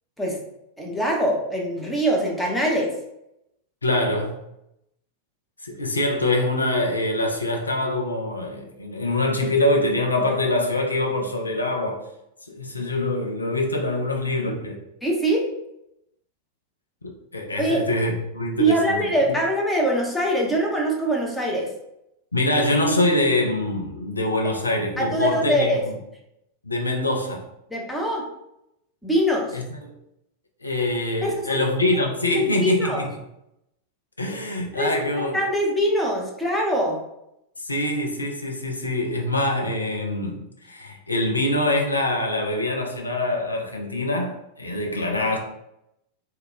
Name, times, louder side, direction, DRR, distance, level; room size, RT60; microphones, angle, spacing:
voice 1, 0.8-2.9 15.0-15.5 17.6-17.8 18.6-21.7 25.0-25.8 27.7-28.2 29.0-29.6 31.2-31.6 32.3-33.0 34.8-37.0, right 1 dB, 5° left, 0.7 m, -23 dB
voice 2, 3.8-4.4 5.6-12.0 12.5-14.8 17.0-19.0 22.3-25.9 26.6-27.4 29.5-29.9 30.6-33.1 34.2-35.3 37.6-45.4, left 1 dB, 80° left, 0.4 m, -24 dB
2.3 x 2.1 x 3.7 m
figure-of-eight pair, 90°, 0 cm